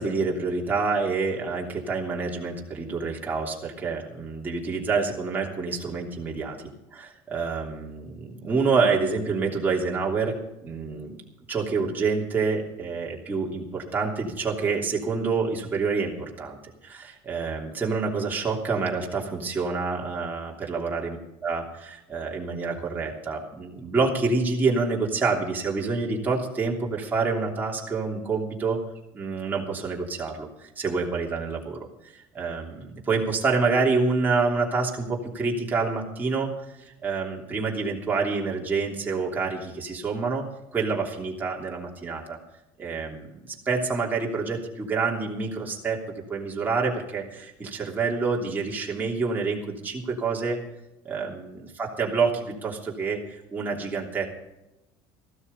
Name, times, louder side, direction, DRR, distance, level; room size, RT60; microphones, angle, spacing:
voice 1, 0.0-6.6 6.9-10.4 10.6-11.2 11.5-16.6 16.8-21.2 21.4-28.8 29.1-36.5 36.8-40.4 40.7-42.4 42.8-46.0 46.3-50.6 51.0-54.3, right 4 dB, 15° right, -2 dB, 3.1 m, -27 dB
14.5 x 12.5 x 5.4 m, 0.93 s
cardioid pair, 135°, 10 cm